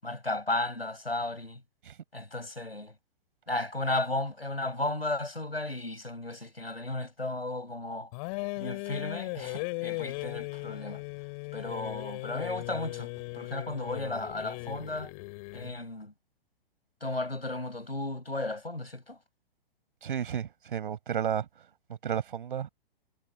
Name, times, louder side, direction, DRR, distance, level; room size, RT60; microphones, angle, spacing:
voice 1, 0.0-1.6 2.1-3.0 3.5-8.1 8.6-11.0 11.5-15.1 15.5-16.1 17.0-19.2, left 2 dB, 90° left, 7.5 m, -34 dB
sound 1, 8.1-15.8, left 29 dB, 35° left, 7.7 m, -38 dB
voice 2, 20.0-21.5 22.0-22.7, right 8 dB, 60° right, 7.9 m, -32 dB
figure-of-eight pair, 115°, 29 cm